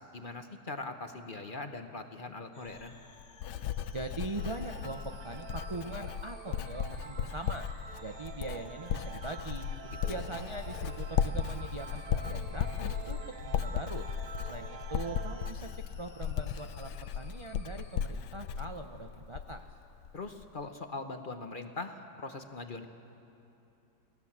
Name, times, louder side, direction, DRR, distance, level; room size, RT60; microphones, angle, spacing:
voice 1, 0.0-3.0 9.8-10.2 20.1-22.9, left 3 dB, 35° left, 6 dB, 1.0 m, -41 dB
sound 1, 2.5-18.0, left 4 dB, 60° left, 2.0 m, -58 dB
Writing, 2.7-19.7 20.0-20.5, left 9 dB, 80° left, 1.3 m, -36 dB
voice 2, 3.9-7.7 8.0-9.7 10.1-14.1 14.4-19.7, right 2 dB, 45° right, 4 dB, 0.3 m, -42 dB
sound 2, 4.3-15.5, right 8 dB, 75° right, 1.3 m, -48 dB
28.5 x 18.0 x 7.4 m, 2.9 s
omnidirectional pair, 1.8 m